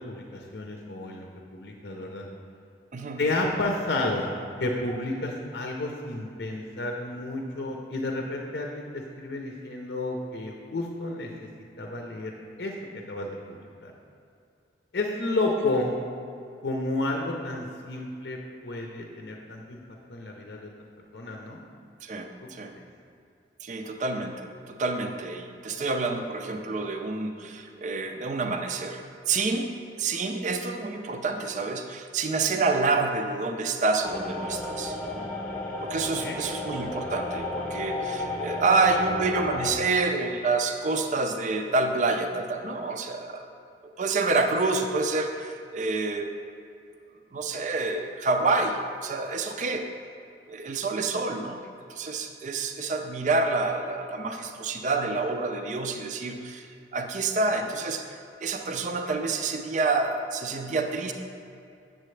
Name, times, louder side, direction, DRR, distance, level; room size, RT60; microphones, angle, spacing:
voice 1, 0.1-2.2 3.2-4.3 4.6-11.3 11.8-12.7 13.1-13.9 14.9-15.9 16.6-19.8 20.1-20.7 21.1-21.6 36.2-36.4, left 2 dB, 60° left, 1 dB, 0.6 m, -31 dB
voice 2, 2.9-3.2 22.0-22.8 23.6-29.7 30.0-35.3 35.8-43.5 44.0-46.3 47.3-49.9 50.5-51.6 51.9-61.1, right 3 dB, 40° right, 5 dB, 0.4 m, -28 dB
sound 1, 34.0-39.7, left 2 dB, 10° left, 0.7 m, -33 dB
7.6 x 7.5 x 3.2 m, 2.5 s
head